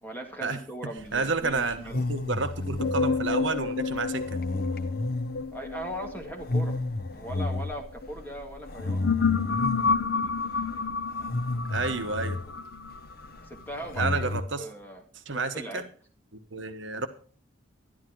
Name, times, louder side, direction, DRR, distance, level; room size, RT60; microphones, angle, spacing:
voice 1, 0.0-1.9 5.5-6.8 7.1-9.1 13.4-14.3 14.6-15.0 15.3-15.9, right 1 dB, 10° left, 1 dB, 2.2 m, -39 dB
sound 1, 1.0-14.4, left 2 dB, 45° left, 1.0 m, -33 dB
voice 2, 1.1-4.3 11.7-12.4 14.0-14.6 15.3-15.8 16.3-17.1, right 4 dB, 70° right, 9 dB, 1.2 m, -30 dB
sound 2, 2.8-8.1 8.7-13.6, left 5 dB, 65° left, 0.6 m, -30 dB
11.5 x 11.5 x 4.6 m, 0.41 s
head